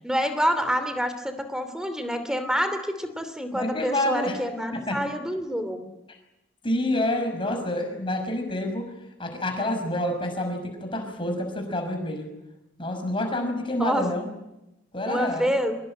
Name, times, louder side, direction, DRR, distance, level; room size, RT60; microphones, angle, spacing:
voice 1, 0.0-5.9 13.7-14.1 15.1-15.7, equal, 5° right, 9 dB, 2.8 m, -27 dB
voice 2, 3.5-4.4 4.7-5.0 6.6-8.9 9.2-12.3 12.8-14.3 14.9-15.5, left 1 dB, 25° left, 4 dB, 6.0 m, -28 dB
24.0 x 22.5 x 9.0 m, 0.93 s
head